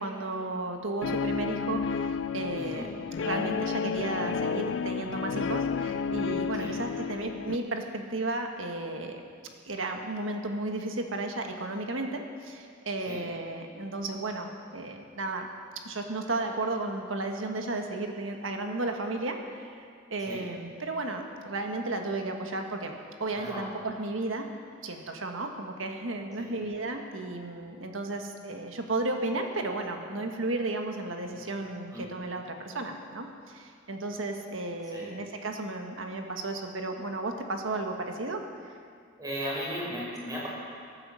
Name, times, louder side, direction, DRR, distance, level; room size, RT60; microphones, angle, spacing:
voice 1, 0.0-2.9 3.2-9.2 9.6-15.5 15.8-19.8 20.1-24.5 24.8-38.4, right 2 dB, 70° right, 4 dB, 1.5 m, -34 dB
Guitar, 1.0-7.6, left 6 dB, 65° left, 0.4 m, -31 dB
voice 2, 2.5-2.9 6.6-6.7 13.1-13.2 20.3-20.4 23.3-23.6 26.4-26.6 31.9-32.0 34.9-35.1 39.2-40.5, equal, 20° right, -5 dB, 5.7 m, -36 dB
18.0 x 9.9 x 7.6 m, 2.2 s
head